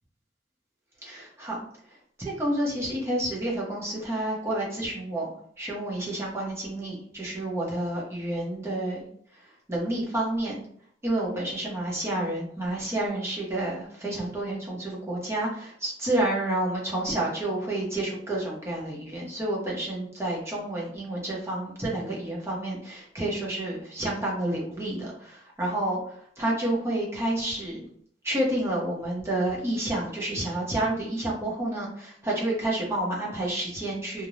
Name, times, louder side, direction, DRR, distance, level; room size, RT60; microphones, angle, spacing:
voice 1, 1.0-1.7 2.2-5.3 5.6-9.1 9.7-10.6 11.0-27.8 28.2-34.3, right 1 dB, 15° right, -4 dB, 0.7 m, -29 dB
2.5 x 2.1 x 3.0 m, 0.64 s
head